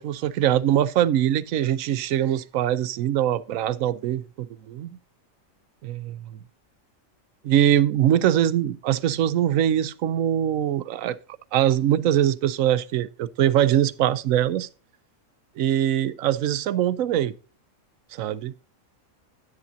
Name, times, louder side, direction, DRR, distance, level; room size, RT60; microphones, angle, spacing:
voice 1, 0.0-5.0 5.8-6.4 7.4-11.2 11.5-14.7 15.6-17.3 18.1-18.5, right 11 dB, 80° right, 1.0 m, -22 dB
9.8 x 9.7 x 2.6 m
omnidirectional pair, 1.4 m